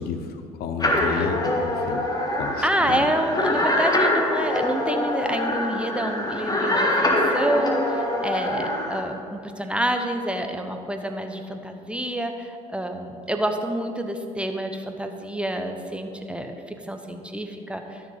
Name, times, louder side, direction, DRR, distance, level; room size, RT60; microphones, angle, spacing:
voice 1, 0.0-2.1 2.4-3.1, left 6 dB, 55° left, 7 dB, 0.7 m, -31 dB
sound 1, 0.8-9.0, left 1 dB, 20° left, 1.6 m, -24 dB
voice 2, 2.6-18.0, right 1 dB, 5° right, 5 dB, 0.8 m, -28 dB
12.5 x 6.7 x 3.9 m, 2.4 s
hypercardioid pair, 60°, 19 cm